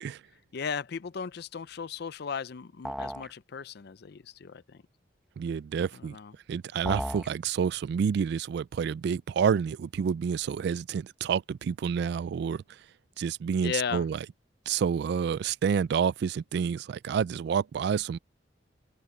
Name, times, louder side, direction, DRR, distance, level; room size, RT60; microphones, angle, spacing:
voice 1, 0.5-4.8 5.9-6.3 13.6-14.1, left 6 dB, 60° left, 0.5 m, -36 dB
sound 1, 2.8-3.3 6.8-7.3, equal, ahead, 1.0 m, -34 dB
voice 2, 5.4-6.2 6.5-12.6 13.2-14.2 14.7-18.2, right 7 dB, 65° right, 0.3 m, -29 dB
open air
head